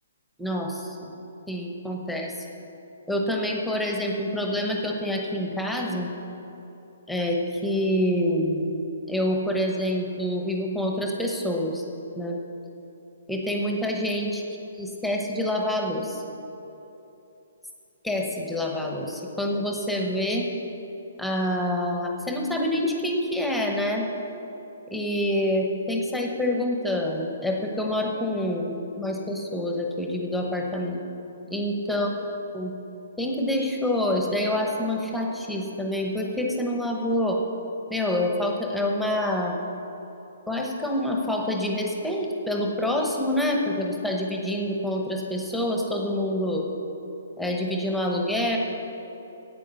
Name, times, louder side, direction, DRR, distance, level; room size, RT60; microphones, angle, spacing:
voice 1, 0.4-1.1 1.5-2.3 3.1-6.1 7.1-8.8 9.1-11.8 12.1-12.4 13.3-14.4 14.8-16.2 18.0-20.4 21.2-24.1 24.9-31.0 31.5-32.1 32.5-32.7 33.2-37.4 37.9-39.6 40.5-46.7 47.4-48.6, left 1 dB, ahead, 0 dB, 0.9 m, -27 dB
9.1 x 8.5 x 6.8 m, 3.0 s
hypercardioid pair, 160°, 0 cm